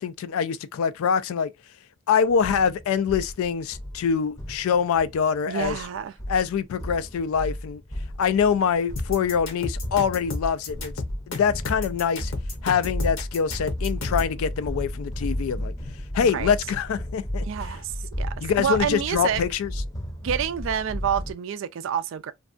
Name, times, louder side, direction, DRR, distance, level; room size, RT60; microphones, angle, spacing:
voice 1, 0.0-1.5 2.1-5.8 6.3-7.8 8.2-10.9 11.3-12.3 12.6-15.7 16.1-17.4 18.4-19.7, left 7 dB, 85° left, 0.3 m, -24 dB
sound 1, 2.2-21.3, equal, 15° left, 0.6 m, -34 dB
voice 2, 5.5-6.1 16.2-16.5 17.4-17.9 18.2-19.4 20.2-22.3, right 8 dB, 65° right, 0.3 m, -28 dB
sound 2, 9.0-14.3, left 2 dB, 70° left, 0.8 m, -31 dB
2.6 x 2.2 x 2.4 m
head